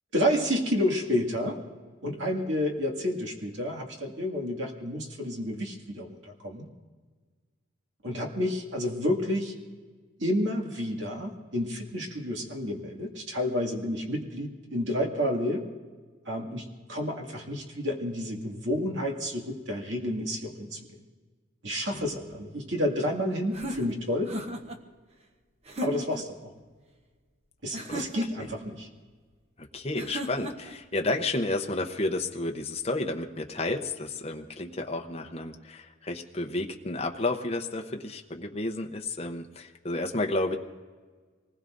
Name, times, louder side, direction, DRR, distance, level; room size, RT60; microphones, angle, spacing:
voice 1, 0.1-1.6 2.0-6.7 8.0-9.5 10.2-15.6 16.3-20.9 21.6-24.3 25.8-26.5 27.6-28.9, left 1 dB, 70° right, 0 dB, 2.3 m, -30 dB
sound 1, 23.5-24.8 25.6-26.3 27.7-28.5 29.9-30.8, equal, 30° right, 0.9 m, -36 dB
voice 2, 29.6-40.6, left 2 dB, 30° left, 3 dB, 0.8 m, -31 dB
26.0 x 20.0 x 2.6 m, 1.5 s
head